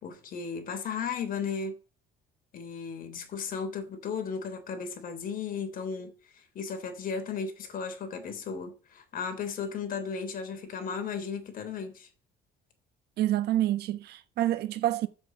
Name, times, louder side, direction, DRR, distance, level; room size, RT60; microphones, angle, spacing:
voice 1, 0.0-1.7 2.5-12.1, left 6 dB, 55° left, 3.4 m, -35 dB
voice 2, 13.2-15.1, right 13 dB, 75° right, 1.3 m, -27 dB
8.0 x 7.8 x 8.7 m
cardioid pair, 110°, 17 cm